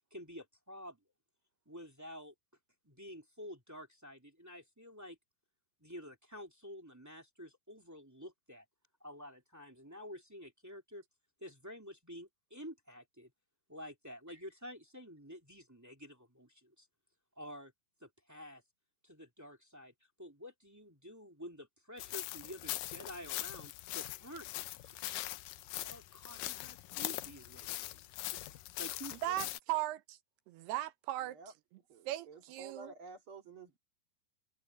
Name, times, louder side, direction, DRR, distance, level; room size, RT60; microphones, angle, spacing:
voice 1, 0.1-1.0 1.7-2.3 2.8-5.2 5.8-8.6 9.0-11.0 11.4-13.3 13.7-16.9 17.4-17.7 18.0-18.6 19.0-19.9 20.2-25.1 25.8-29.4, equal, 5° right, 1.9 m, -50 dB
sound 1, 22.0-29.6, left 16 dB, 80° left, 2.0 m, -42 dB
voice 2, 29.2-30.2 30.5-31.4 32.1-32.9, right 15 dB, 80° right, 3.0 m, -37 dB
voice 3, 31.9-33.8, right 3 dB, 40° right, 2.4 m, -52 dB
omnidirectional pair, 4.7 m